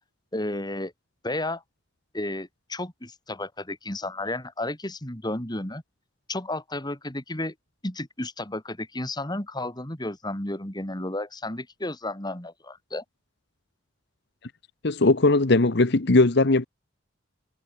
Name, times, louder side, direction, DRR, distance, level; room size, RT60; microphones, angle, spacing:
voice 1, 0.3-0.9 1.2-1.6 2.1-5.8 6.3-7.5 7.8-13.0, left 1 dB, 20° left, 3.1 m, -32 dB
voice 2, 14.8-16.7, left 2 dB, 60° left, 1.1 m, -19 dB
head